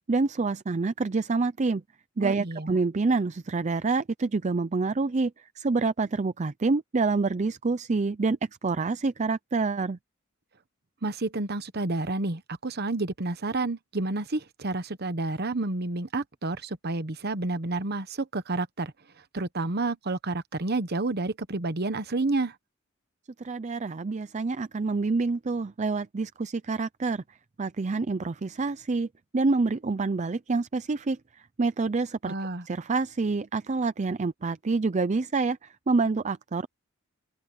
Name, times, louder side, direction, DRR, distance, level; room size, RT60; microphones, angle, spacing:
voice 1, 0.1-1.8 2.2-10.0 23.4-29.1 29.3-32.3 32.7-36.7, right 3 dB, 35° right, 0.5 m, -27 dB
voice 2, 2.2-2.7 11.0-18.9 19.3-22.5 32.2-32.7, right 2 dB, 50° right, 1.1 m, -30 dB
open air
head